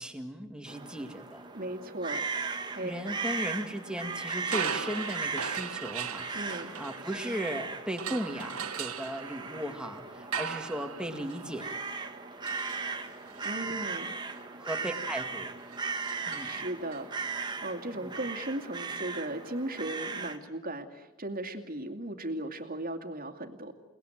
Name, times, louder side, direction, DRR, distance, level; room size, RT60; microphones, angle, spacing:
voice 1, 0.0-1.4 2.8-11.7 14.6-15.5 16.3-16.5 17.9-18.2, equal, 5° right, 5 dB, 2.0 m, -37 dB
sound 1, 0.7-20.4, right 4 dB, 20° right, 1.6 m, -38 dB
voice 2, 1.5-2.2 2.7-2.9 6.3-6.7 13.4-14.1 16.4-23.7, right 1 dB, 40° right, 7 dB, 2.4 m, -37 dB
sound 2, 4.4-7.5 8.0-17.0, right 7 dB, 85° right, 1.7 m, -40 dB
29.5 x 19.5 x 9.1 m, 1.1 s
head